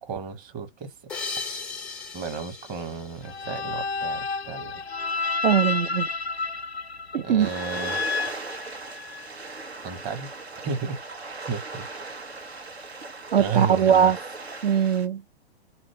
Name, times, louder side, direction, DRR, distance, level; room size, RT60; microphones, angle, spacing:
voice 1, 0.0-0.9 2.1-4.8 7.1-8.2 9.8-10.3 10.6-11.9 13.4-14.1, right 5 dB, 30° right, 1.3 m, -33 dB
sound 1, 1.1-4.2, left 4 dB, 5° left, 0.3 m, -37 dB
sound 2, 3.2-9.3, left 4 dB, 90° left, 0.5 m, -30 dB
voice 2, 5.4-6.1 7.1-7.5 13.3-14.2 14.6-15.2, right 8 dB, 65° right, 0.5 m, -20 dB
sound 3, 7.4-15.1, right 3 dB, 85° right, 1.1 m, -38 dB
3.8 x 2.5 x 3.5 m
figure-of-eight pair, 110°, 31 cm